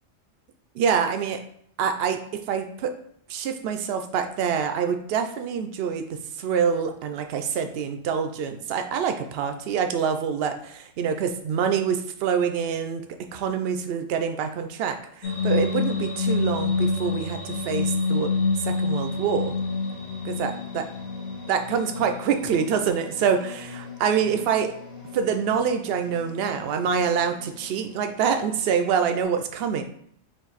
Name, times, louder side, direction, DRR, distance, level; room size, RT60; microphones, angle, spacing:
voice 1, 0.7-1.4 1.8-2.9 3.3-18.3 18.6-19.6 20.2-20.9 21.5-24.7 25.1-29.8, right 7 dB, 65° right, 7 dB, 0.7 m, -26 dB
sound 1, 15.2-29.2, left 4 dB, 55° left, 1.1 m, -29 dB
4.3 x 2.6 x 4.0 m, 0.67 s
omnidirectional pair, 1.3 m